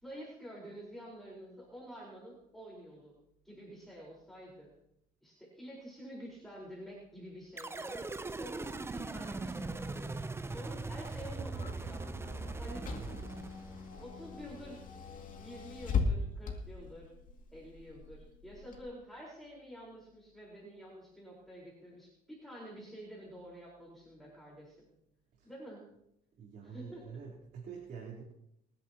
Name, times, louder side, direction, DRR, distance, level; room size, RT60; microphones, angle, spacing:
voice 1, 0.0-3.2 3.4-4.7 5.2-10.2 10.5-12.0 12.6-13.1 13.3-13.6 14.0-14.8 15.4-17.1 17.5-24.9 25.4-25.8 26.6-27.0, equal, ahead, -5 dB, 4.5 m, -49 dB
sound 1, 7.6-14.0, right 3 dB, 15° right, 0.6 m, -40 dB
Car / Engine, 10.5-18.8, left 4 dB, 50° left, 2.4 m, -40 dB
voice 2, 26.4-28.2, right 6 dB, 60° right, -3 dB, 3.7 m, -46 dB
28.5 x 10.5 x 3.0 m, 0.80 s
cardioid pair, 110°, 17 cm